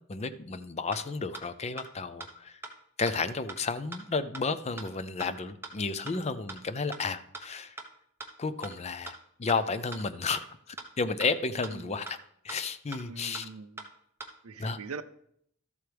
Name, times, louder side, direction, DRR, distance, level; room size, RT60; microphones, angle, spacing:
voice 1, 0.1-2.6 3.0-7.7 8.4-9.1 9.4-12.2 12.4-13.5 14.6-14.8, left 4 dB, 30° left, 13 dB, 0.5 m, -32 dB
sound 1, 0.5-0.6 0.9-1.0 1.3-1.4 1.8-1.9 2.2-2.3 2.6-2.7 3.1-3.2 3.5-3.6 3.9-4.0 4.3-4.4 4.8-4.9 5.2-5.3 5.6-5.7 6.1-6.2 6.5-6.6 6.9-7.0 7.3-7.4 7.8-7.9 8.2-8.3 8.6-8.7 9.1-9.2 9.5-9.6 9.9-10.0 10.3-10.4 10.8-10.9 11.2-11.3 11.6-11.7 12.1-12.2 12.5-12.6 12.9-13.0 13.3-13.4 13.8-13.9 14.2-14.3, right 2 dB, 10° right, 1.0 m, -40 dB
voice 2, 11.7-12.0 13.1-13.9 14.4-15.0, right 4 dB, 85° right, 13 dB, 0.6 m, -43 dB
13.0 x 7.8 x 3.4 m, 0.71 s
head